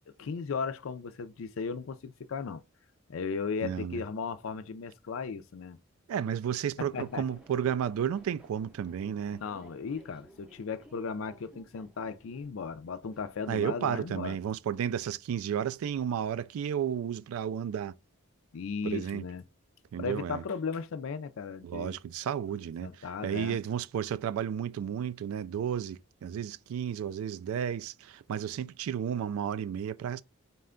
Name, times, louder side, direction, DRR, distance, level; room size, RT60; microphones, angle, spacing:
voice 1, 0.2-2.6 3.1-5.8 6.9-7.2 9.4-14.4 18.5-19.4 20.0-22.0 22.5-23.6, left 5 dB, 65° left, 0.4 m, -36 dB
voice 2, 3.6-4.0 6.1-9.4 13.5-17.9 18.8-19.2 19.9-20.4 21.6-30.2, right 8 dB, 80° right, 0.3 m, -32 dB
sound 1, 6.9-14.3, right 1 dB, 5° right, 0.5 m, -58 dB
4.2 x 2.2 x 3.6 m
head